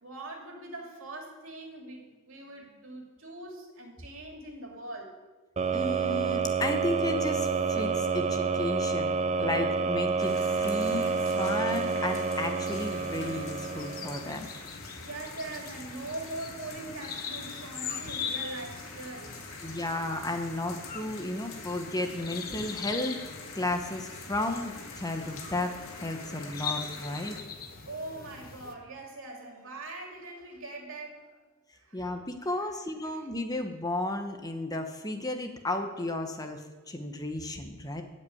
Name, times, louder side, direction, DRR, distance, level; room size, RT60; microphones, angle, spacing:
voice 1, 0.0-5.1 15.0-19.5 27.9-31.4 31.7-32.1 32.6-32.7 33.0-33.2, right 2 dB, 65° right, 0 dB, 2.7 m, -42 dB
sound 1, 5.6-14.5, right 5 dB, 30° right, 0.4 m, -29 dB
voice 2, 5.7-10.3 10.6-14.5 19.6-23.2 23.5-27.4 31.9-38.0, left 2 dB, 15° left, 5 dB, 1.0 m, -33 dB
sound 2, 10.2-27.4, left 3 dB, 65° left, 2.0 m, -45 dB
sound 3, 12.7-28.7, left 6 dB, 45° left, 1.1 m, -42 dB
15.0 x 5.4 x 8.6 m, 1.3 s
head